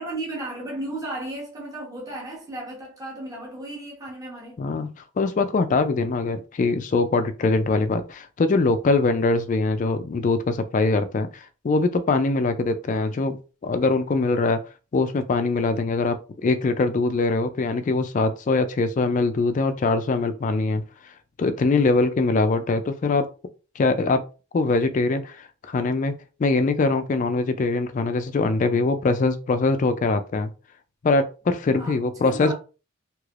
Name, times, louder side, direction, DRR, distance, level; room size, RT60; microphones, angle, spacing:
voice 1, 0.0-4.6 31.8-31.9 32.2-32.5, right 1 dB, 15° right, 1.1 m, -34 dB
voice 2, 4.6-4.9 5.2-13.4 13.6-14.6 14.9-20.8 21.4-23.3 23.8-24.2 24.5-26.1 26.4-30.5 31.0-32.5, left 3 dB, 35° left, 0.3 m, -22 dB
3.2 x 2.9 x 2.4 m
head